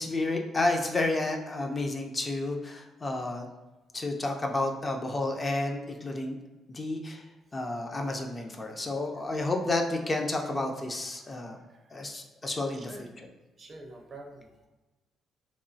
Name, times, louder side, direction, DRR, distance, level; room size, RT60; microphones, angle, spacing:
voice 1, 0.0-3.5 3.9-6.4 6.7-7.2 7.5-11.6 11.9-12.9, left 2 dB, 30° left, 2 dB, 0.3 m, -31 dB
voice 2, 11.7-12.1 12.7-13.1 13.6-14.7, right 2 dB, 40° right, 2 dB, 0.5 m, -48 dB
2.9 x 2.2 x 2.6 m, 1.1 s
cardioid pair, 90°, 0 cm